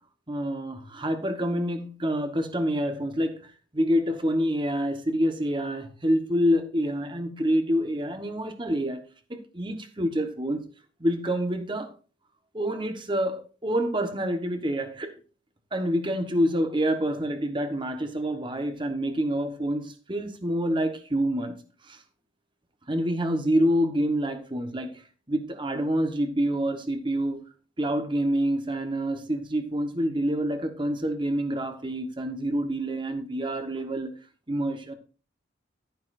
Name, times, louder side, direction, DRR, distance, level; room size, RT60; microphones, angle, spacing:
voice 1, 0.3-9.0 9.3-10.6 11.0-11.9 12.5-15.1 15.7-21.6 21.9-22.0 22.9-24.9 25.3-27.5 27.8-34.1 34.5-34.9, equal, 25° right, 1.1 m, -27 dB
11.5 x 10.0 x 2.6 m
head